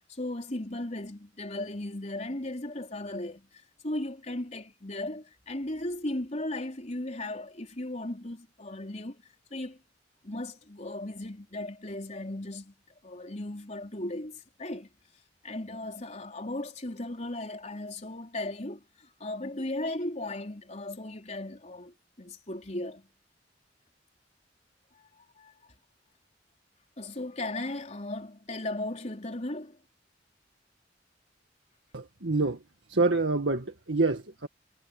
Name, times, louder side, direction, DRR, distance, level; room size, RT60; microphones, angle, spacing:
voice 1, 0.1-9.2 9.5-9.8 10.2-12.7 13.0-14.9 15.4-23.1 25.4-25.5 27.0-29.8, left 1 dB, 40° left, 4.1 m, -36 dB
voice 2, 31.9-32.6 32.9-34.5, right 3 dB, 85° right, 1.9 m, -27 dB
head